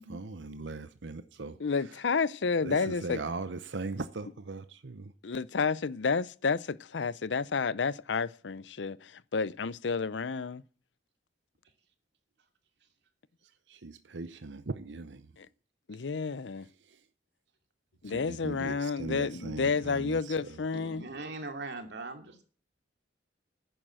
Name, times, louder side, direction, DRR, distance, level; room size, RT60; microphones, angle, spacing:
voice 1, 0.0-1.6 2.6-5.1 13.7-15.3 16.8-17.0 18.0-20.6, right 3 dB, 85° right, 0.8 m, -39 dB
voice 2, 1.6-3.2 5.2-10.6 15.4-15.5 15.9-16.7 18.0-21.1, left 5 dB, 80° left, 0.6 m, -30 dB
voice 3, 20.7-22.4, right 2 dB, 65° right, 2.7 m, -41 dB
11.0 x 9.2 x 7.6 m
head